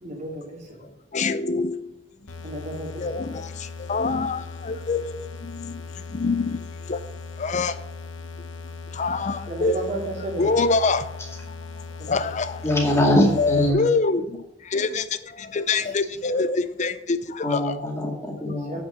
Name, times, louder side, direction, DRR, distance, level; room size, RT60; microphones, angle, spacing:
voice 1, 0.0-0.9 2.4-3.2 9.5-11.0 12.0-12.2 13.8-14.0 15.8-15.9 18.7-18.8, right 2 dB, 40° right, 2.4 m, -34 dB
voice 2, 1.1-1.7 3.0-3.4 3.9-5.0 6.1-6.6 6.9-7.0 7.4-7.7 9.0-9.8 10.4-11.0 12.1-12.5 13.4-14.2 14.7-15.0 15.5-16.9 17.4-17.6, left 4 dB, 40° left, 0.5 m, -24 dB
sound 1, 2.3-13.7, left 4 dB, 75° left, 0.9 m, -38 dB
voice 3, 12.6-13.9 17.4-18.8, left 1 dB, 15° left, 2.2 m, -22 dB
8.3 x 6.1 x 6.3 m
head